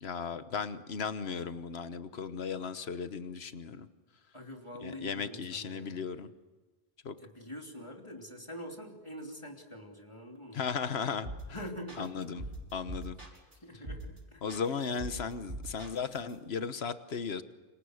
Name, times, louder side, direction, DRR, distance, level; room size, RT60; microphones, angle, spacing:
voice 1, 0.0-3.9 4.8-6.3 7.0-7.1 10.5-11.6 12.0-12.4 12.7-13.2 14.4-17.4, left 6 dB, 80° left, 11 dB, 1.4 m, -36 dB
voice 2, 4.3-6.0 7.2-10.6 11.5-12.1 13.6-14.5, equal, 30° left, 2 dB, 3.1 m, -45 dB
sound 1, 11.2-11.6 11.9-13.5 13.8-14.2 14.5-16.3, right 1 dB, 65° right, 6.0 m, -42 dB
29.5 x 26.5 x 6.5 m, 1.3 s
omnidirectional pair, 1.1 m